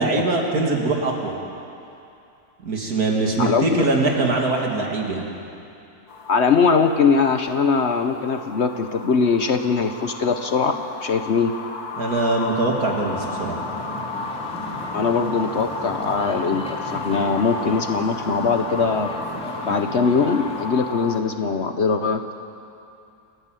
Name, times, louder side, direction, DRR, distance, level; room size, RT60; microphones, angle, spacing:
voice 1, 0.0-1.3 2.6-5.2 12.0-13.6, right 2 dB, 75° right, 0 dB, 3.0 m, -22 dB
voice 2, 3.4-3.8 6.3-11.5 14.9-19.1 19.6-22.2, left 5 dB, 55° left, 7 dB, 1.0 m, -21 dB
sound 1, 6.1-21.2, left 4 dB, 90° left, 1.8 m, -33 dB
sound 2, 13.1-20.7, equal, 5° left, 2.8 m, -36 dB
28.5 x 10.5 x 9.1 m, 2.7 s
omnidirectional pair, 1.6 m